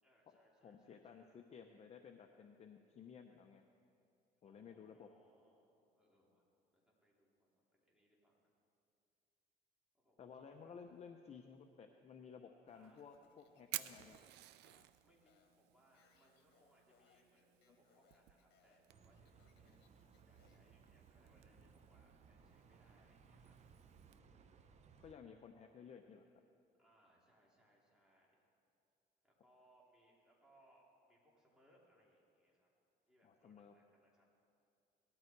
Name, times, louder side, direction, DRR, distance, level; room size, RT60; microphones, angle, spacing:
voice 1, 0.0-1.4 4.4-8.5 9.9-10.8 12.7-13.1 15.0-23.6 26.8-28.4 29.2-32.7 33.1-34.3, right 1 dB, 5° right, -5 dB, 3.7 m, -73 dB
voice 2, 0.6-3.6 4.4-5.1 10.2-14.2 25.0-26.2 33.2-33.7, left 6 dB, 40° left, 5 dB, 0.8 m, -56 dB
Fire, 12.7-24.2, right 15 dB, 85° right, 0.6 m, -55 dB
Speech, 12.9-20.7, left 7 dB, 80° left, 1.4 m, -75 dB
Bus, 18.9-25.1, right 6 dB, 40° right, 0.9 m, -64 dB
18.5 x 12.5 x 4.7 m, 2.6 s
cardioid pair, 110°, 17 cm